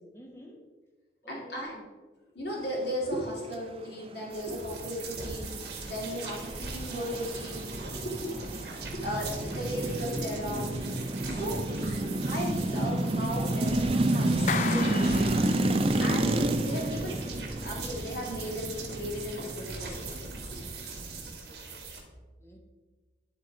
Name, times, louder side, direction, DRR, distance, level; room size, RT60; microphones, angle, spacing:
voice 1, 0.1-0.6 1.2-1.9 6.1-6.3 8.3-8.7 11.3-11.9 22.4-22.6, equal, 15° left, 3 dB, 0.9 m, -48 dB
voice 2, 1.3-1.7 2.3-5.5 5.8-7.7 7.9-8.4 8.9-10.7 11.3-15.3 16.0-16.3 16.6-17.2 17.6-20.1, equal, 65° left, -3 dB, 2.2 m, -36 dB
sound 1, 4.3-22.0, right 3 dB, 60° right, 1.5 m, -41 dB
sound 2, 4.6-21.3, right 1 dB, 30° right, 0.4 m, -30 dB
Clapping, 14.5-16.1, left 6 dB, 40° left, 0.4 m, -34 dB
11.0 x 3.7 x 4.3 m, 1.3 s
head